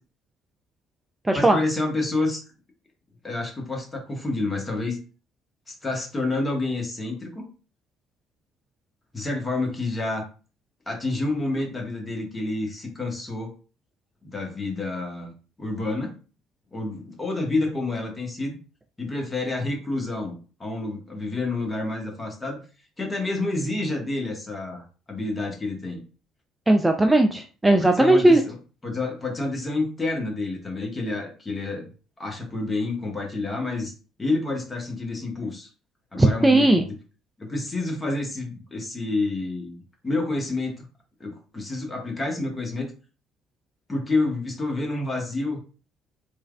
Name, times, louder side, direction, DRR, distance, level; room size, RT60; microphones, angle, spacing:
voice 1, 1.3-2.4 3.2-5.0 5.7-7.4 9.1-10.2 10.9-13.5 14.2-16.1 16.7-18.6 19.0-22.6 23.0-26.0 27.8-28.6 28.8-31.9 32.2-33.9 34.2-35.7 36.1-37.0 37.4-39.8 40.0-40.8 41.2-42.9 43.9-45.6, left 2 dB, 20° left, 2 dB, 1.0 m, -29 dB
voice 2, 26.7-28.4 36.2-36.8, right 1 dB, 10° right, 5 dB, 0.3 m, -17 dB
3.1 x 2.3 x 2.3 m, 0.36 s
hypercardioid pair, 60°, 0 cm